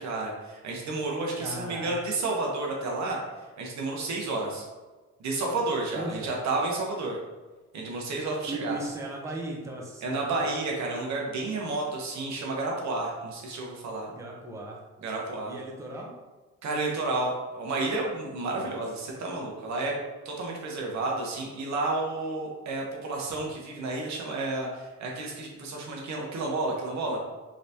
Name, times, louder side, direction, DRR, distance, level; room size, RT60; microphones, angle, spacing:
voice 1, 0.0-3.2 3.6-4.7 5.2-7.2 7.7-8.8 10.0-14.1 15.0-15.5 16.6-20.0 20.2-27.2, right 2 dB, 65° right, -1 dB, 0.9 m, -31 dB
voice 2, 1.4-1.9 5.9-6.3 8.5-10.3 14.1-14.8 15.5-16.1 18.6-18.8, right 2 dB, 10° right, -2 dB, 0.6 m, -37 dB
3.3 x 3.0 x 2.7 m, 1.2 s
cardioid pair, 90°, 30 cm